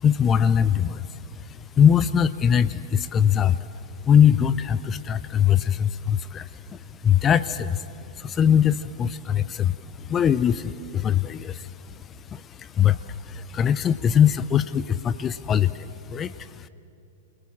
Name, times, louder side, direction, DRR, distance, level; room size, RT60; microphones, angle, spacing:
voice 1, 0.0-1.2 1.8-3.6 4.0-7.9 8.2-11.7 12.3-16.7, left 8 dB, 25° left, 16 dB, 0.6 m, -22 dB
28.5 x 20.0 x 7.4 m, 2.7 s
figure-of-eight pair, 105°, 0 cm